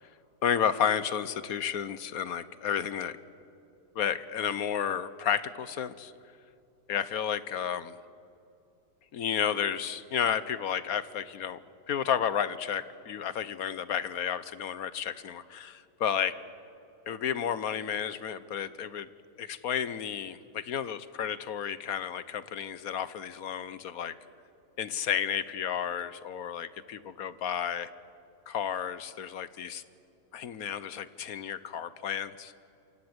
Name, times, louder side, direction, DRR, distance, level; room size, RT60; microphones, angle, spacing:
voice 1, 0.4-3.2 3.9-6.1 6.9-8.0 9.1-11.6 11.9-16.3 17.1-19.1 19.4-24.1 24.8-27.9 28.5-29.8 30.3-32.5, left 8 dB, 65° left, 15 dB, 1.3 m, -32 dB
28.5 x 25.5 x 8.0 m, 2.6 s
omnidirectional pair, 1.7 m